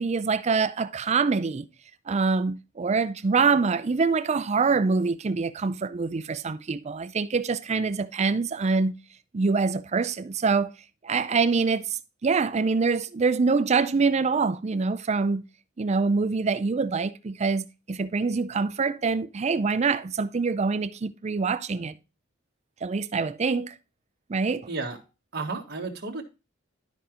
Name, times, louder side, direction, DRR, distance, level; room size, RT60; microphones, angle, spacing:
voice 1, 0.0-1.7 2.1-9.0 9.3-10.7 11.0-15.4 15.8-21.9 22.8-23.7 24.3-24.7, right 4 dB, 35° right, 0.4 m, -25 dB
voice 2, 24.7-25.0 25.3-26.2, right 3 dB, 55° right, 1.6 m, -32 dB
12.5 x 4.9 x 2.9 m
head